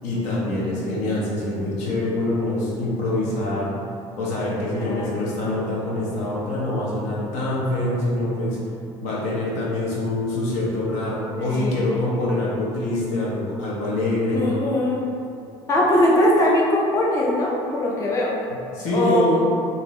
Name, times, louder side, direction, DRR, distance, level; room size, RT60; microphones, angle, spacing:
voice 1, 0.0-3.7 4.2-8.6 9.0-14.4 18.7-19.4, left 1 dB, 75° left, -5 dB, 0.8 m, -25 dB
voice 2, 4.7-5.3 11.4-11.8 14.3-15.0 15.7-18.3 18.9-19.3, left 1 dB, 25° left, -4 dB, 0.4 m, -21 dB
2.7 x 2.6 x 3.0 m, 2.6 s
cardioid pair, 125°, 12 cm